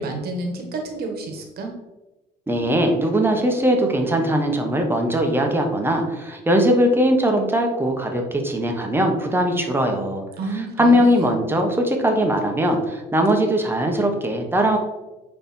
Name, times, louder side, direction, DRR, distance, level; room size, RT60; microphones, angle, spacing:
voice 1, 0.0-1.7 10.4-11.3, right 2 dB, 65° right, 3 dB, 1.7 m, -29 dB
voice 2, 2.5-10.2 10.8-14.8, equal, 15° right, 3 dB, 1.3 m, -20 dB
8.9 x 3.4 x 4.5 m, 1.1 s
cardioid pair, 110°, 17 cm